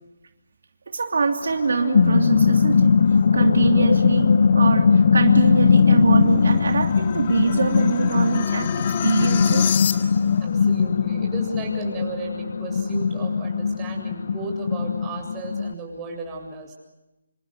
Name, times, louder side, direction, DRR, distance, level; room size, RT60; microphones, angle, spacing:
voice 1, 0.9-8.7 9.0-9.8, right 4 dB, 70° right, 4 dB, 2.9 m, -24 dB
sound 1, 1.5-15.7, left 6 dB, 60° left, 0.8 m, -20 dB
sound 2, 5.3-10.4, left 8 dB, 35° left, 2.1 m, -31 dB
voice 2, 10.4-16.7, right 3 dB, 15° right, 1 dB, 7.5 m, -34 dB
28.0 x 26.0 x 6.8 m, 0.98 s
hypercardioid pair, 160°, 0 cm